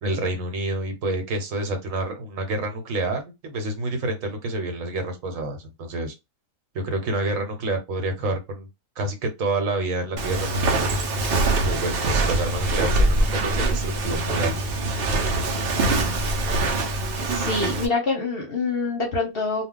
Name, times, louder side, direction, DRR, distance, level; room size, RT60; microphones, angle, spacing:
voice 1, 0.0-6.1 6.7-8.7 9.0-10.9 11.6-14.6, right 2 dB, 75° right, 1.2 m, -28 dB
Walk footsteps, 10.2-17.9, right 2 dB, 55° right, 0.7 m, -23 dB
voice 2, 17.3-19.7, left 3 dB, 50° left, 0.8 m, -26 dB
2.3 x 2.2 x 3.7 m
omnidirectional pair, 1.4 m